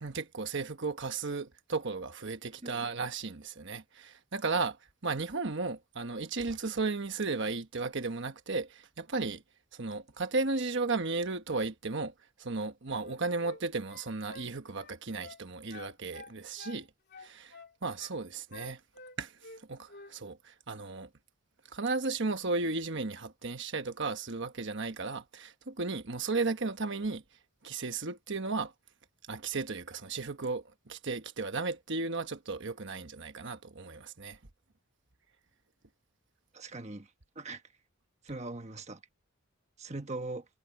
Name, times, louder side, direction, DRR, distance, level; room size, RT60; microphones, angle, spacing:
voice 1, 0.0-4.8 5.0-9.4 9.7-12.1 12.4-16.9 17.2-17.5 17.8-18.8 19.2-19.3 19.7-21.1 21.7-27.2 27.6-28.7 29.3-34.4, right 3 dB, 55° right, 1.2 m, -34 dB
sound 1, 12.9-13.6 13.9-15.4 15.7-16.8 17.1-18.1 18.5-19.6 19.9-20.1, left 3 dB, 50° left, 2.8 m, -50 dB
voice 2, 36.5-37.1 37.3-37.6 38.2-39.0 39.8-40.4, right 2 dB, 30° right, 1.3 m, -40 dB
head